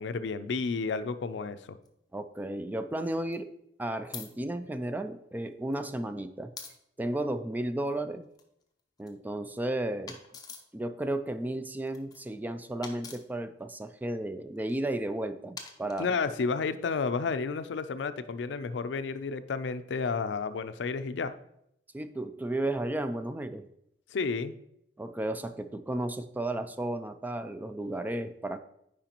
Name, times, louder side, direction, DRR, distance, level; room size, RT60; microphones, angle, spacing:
voice 1, 0.0-1.8 16.0-21.3 24.1-24.5, left 4 dB, 80° left, 12 dB, 0.4 m, -31 dB
sound 1, 1.8-1.9 3.0-3.4 4.1-4.3 5.5-5.7 6.6-6.7 8.2-9.1 10.1-10.7 11.8-12.3 12.8-13.2 14.6-14.8 15.6-16.4, left 5 dB, 25° left, 0.7 m, -45 dB
voice 2, 2.1-3.5 3.8-6.5 7.0-8.3 9.0-10.2 10.7-16.2 21.9-23.7 25.0-28.6, right 1 dB, 10° right, 9 dB, 0.3 m, -33 dB
9.0 x 4.8 x 2.9 m, 0.78 s
head